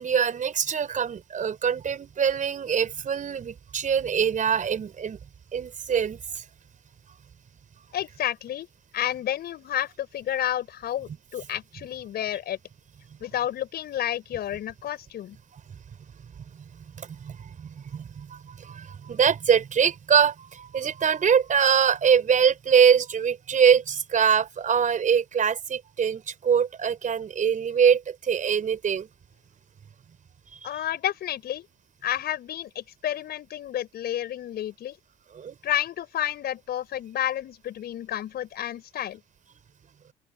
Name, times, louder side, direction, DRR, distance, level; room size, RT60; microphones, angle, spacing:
voice 1, 0.0-5.2 5.5-6.4 16.5-16.6 17.0-29.1 35.3-35.6, right 7 dB, 40° right, 5.8 m, -23 dB
voice 2, 7.9-8.7 8.9-12.6 13.2-15.4 30.6-31.7 32.0-35.0 35.6-39.2, left 11 dB, 55° left, 5.8 m, -30 dB
open air
hypercardioid pair, 60°, 20 cm